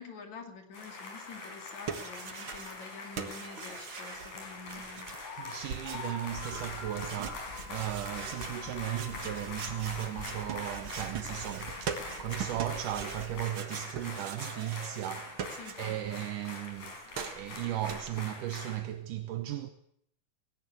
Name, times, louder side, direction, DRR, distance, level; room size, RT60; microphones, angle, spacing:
voice 1, 0.0-5.1 15.6-16.1, left 5 dB, 65° left, 3.8 m, -47 dB
sound 1, 0.7-18.8, left 3 dB, 90° left, 6.5 m, -43 dB
sound 2, 1.5-2.9 3.2-16.1 16.4-18.2, right 7 dB, 50° right, 1.9 m, -42 dB
voice 2, 5.3-19.7, right 12 dB, 85° right, 2.5 m, -36 dB
Fire, 6.3-13.4, left 3 dB, 25° left, 1.4 m, -48 dB
17.5 x 17.0 x 8.6 m
omnidirectional pair, 3.6 m